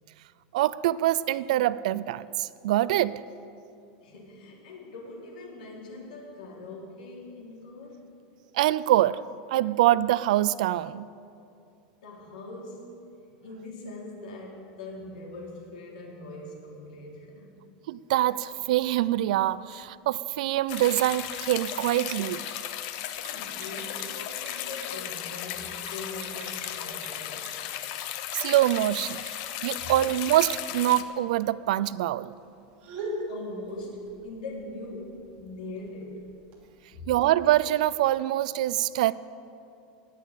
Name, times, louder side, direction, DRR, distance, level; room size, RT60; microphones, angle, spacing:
voice 1, 0.5-3.2 8.5-9.2 9.5-11.1 17.9-22.5 28.3-29.2 29.6-32.3 37.1-39.1, right 14 dB, 65° right, 0.4 m, -24 dB
voice 2, 4.0-8.1 12.0-13.0 13.4-17.5 23.1-27.6 29.8-29.9 33.3-36.3 36.9-37.1, left 2 dB, 85° left, 3.8 m, -42 dB
sound 1, 18.4-36.7, right 1 dB, 35° right, 2.7 m, -46 dB
sound 2, 20.7-31.0, left 11 dB, 45° left, 0.7 m, -36 dB
19.5 x 6.7 x 8.5 m
supercardioid pair, 175°, 4 cm